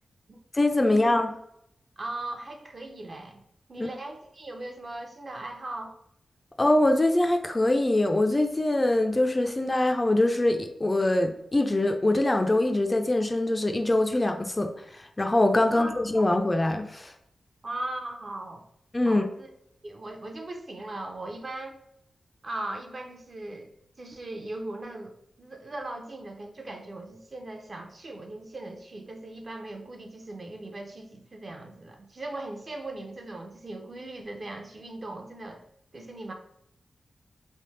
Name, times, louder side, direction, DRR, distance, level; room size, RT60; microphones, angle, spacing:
voice 1, 0.5-1.3 3.8-3.9 6.6-17.1 18.9-19.3, left 1 dB, 20° left, 5 dB, 0.4 m, -23 dB
voice 2, 2.0-3.4 3.7-6.0 15.6-16.0 17.6-18.6 19.1-19.5 19.8-21.8 22.4-35.6 35.9-36.3, right 2 dB, 40° right, 3 dB, 0.6 m, -39 dB
3.2 x 2.8 x 3.1 m, 0.74 s
wide cardioid pair, 105°, 0 cm